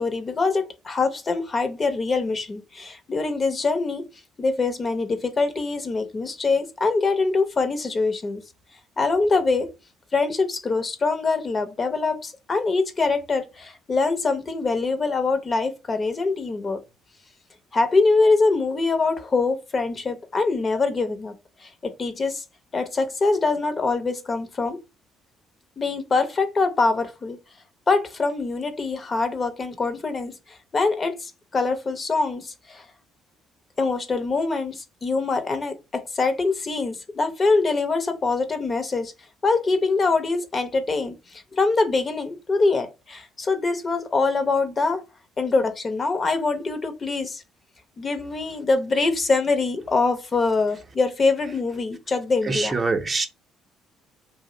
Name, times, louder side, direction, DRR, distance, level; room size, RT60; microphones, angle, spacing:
voice 1, 0.0-4.0 4.4-8.4 9.0-9.7 10.1-16.8 17.7-21.3 21.6-22.4 22.7-24.8 25.8-27.4 27.9-32.8 33.8-39.1 39.4-45.0 45.4-47.4 48.0-52.7, left 3 dB, 35° left, 0.7 m, -24 dB
voice 2, 52.4-53.3, right 3 dB, 35° right, 0.6 m, -24 dB
2.5 x 2.0 x 3.7 m
hypercardioid pair, 60°, 0 cm